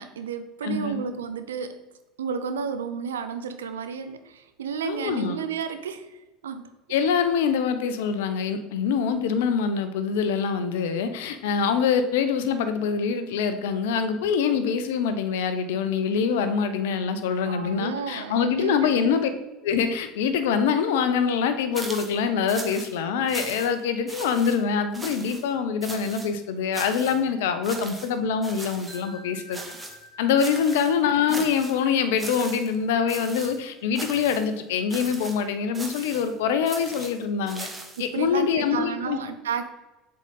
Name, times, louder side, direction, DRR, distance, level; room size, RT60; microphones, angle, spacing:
voice 1, 0.0-1.9 2.2-6.7 14.5-14.6 17.4-18.9 23.5-23.7 38.0-39.6, right 6 dB, 80° right, 9 dB, 0.4 m, -32 dB
voice 2, 0.6-1.0 4.8-5.4 6.9-19.3 19.6-29.8 30.2-37.7 38.0-39.2, left 6 dB, 70° left, 10 dB, 0.6 m, -25 dB
sound 1, 21.7-22.2 22.5-22.9 23.3-23.8 24.1-24.6 24.9-25.4 25.8-26.3 26.7-27.2 27.6-28.1 28.4-29.0 29.5-30.0 30.4-30.9 31.3-31.8 32.2-32.8 33.1-33.6 33.9-34.5 34.9-35.4 35.7-36.3 36.7-38.1, right 2 dB, 15° right, 1.2 m, -38 dB
sound 2, 28.9-34.8, left 1 dB, 30° left, 2.2 m, -50 dB
7.2 x 3.8 x 3.9 m, 1.0 s
hypercardioid pair, 70°, 0 cm